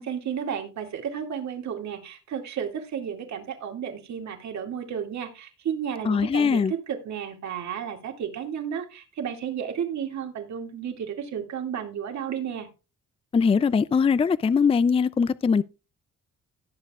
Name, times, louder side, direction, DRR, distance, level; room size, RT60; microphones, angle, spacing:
voice 1, 0.0-12.7, right 8 dB, 65° right, 2.4 m, -32 dB
voice 2, 6.1-6.7 13.3-15.6, left 5 dB, 20° left, 0.4 m, -21 dB
17.5 x 7.3 x 2.4 m
cardioid pair, 90°, 30 cm